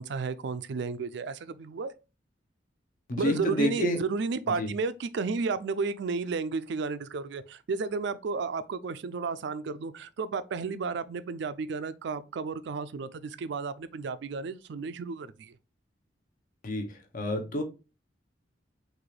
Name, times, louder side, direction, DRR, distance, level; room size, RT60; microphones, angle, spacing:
voice 1, 0.0-1.9 3.2-15.5, right 4 dB, 70° right, 0.4 m, -32 dB
voice 2, 3.1-4.0 4.6-4.7 16.6-17.6, left 1 dB, 50° left, 0.9 m, -29 dB
6.1 x 2.5 x 3.2 m
head